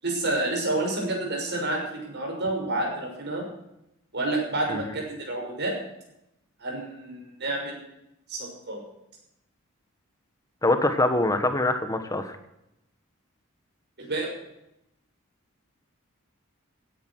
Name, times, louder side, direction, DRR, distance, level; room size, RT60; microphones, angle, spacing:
voice 1, 0.0-3.4 4.1-5.7 6.6-7.8 8.3-8.8 14.0-14.3, right 2 dB, 55° right, 0 dB, 6.2 m, -29 dB
voice 2, 10.6-12.4, left 2 dB, 15° left, 8 dB, 1.5 m, -24 dB
16.5 x 10.5 x 6.2 m, 0.84 s
head